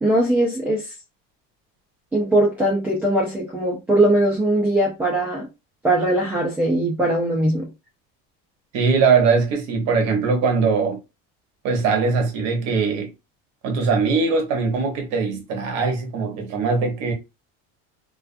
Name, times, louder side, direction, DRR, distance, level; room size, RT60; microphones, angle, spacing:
voice 1, 0.0-0.8 2.1-5.5 5.8-7.7, right 1 dB, 5° right, 0.3 m, -20 dB
voice 2, 8.7-11.0 11.6-13.1 13.6-17.1, right 4 dB, 55° right, 0.9 m, -21 dB
2.4 x 2.2 x 2.5 m
cardioid pair, 160°, 32 cm